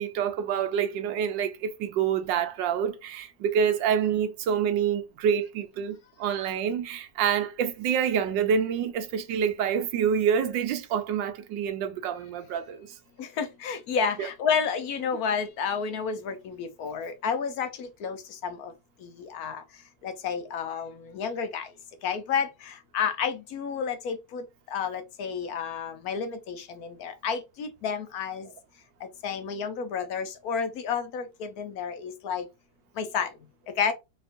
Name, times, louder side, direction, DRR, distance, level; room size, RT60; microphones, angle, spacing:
voice 1, 0.0-12.9 14.2-14.3, right 8 dB, 80° right, 1.4 m, -27 dB
voice 2, 13.2-18.2 18.4-18.7 19.0-19.6 20.0-21.7 22.0-24.4 24.7-28.5 29.2-32.4 33.0-33.3 33.8-33.9, left 6 dB, 65° left, 1.0 m, -30 dB
4.2 x 2.9 x 2.5 m
omnidirectional pair, 2.0 m